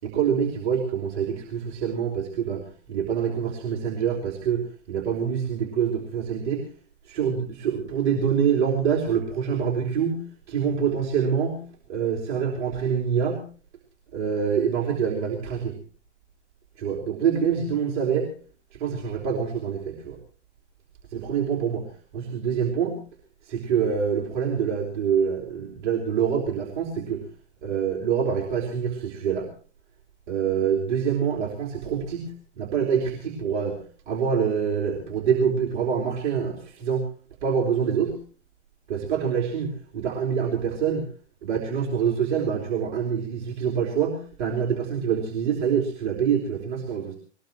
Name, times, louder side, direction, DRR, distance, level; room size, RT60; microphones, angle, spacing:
voice 1, 0.0-4.6 4.9-6.7 7.0-11.6 11.9-13.4 14.1-15.7 16.8-18.3 18.7-20.2 21.1-21.8 22.1-23.0 23.4-27.2 27.6-29.5 30.3-33.8 34.1-37.0 37.4-38.2 38.9-41.0 41.4-47.2, right 7 dB, 40° right, -1 dB, 3.8 m, -26 dB
20.5 x 20.5 x 3.1 m, 0.40 s
figure-of-eight pair, 115°, 35 cm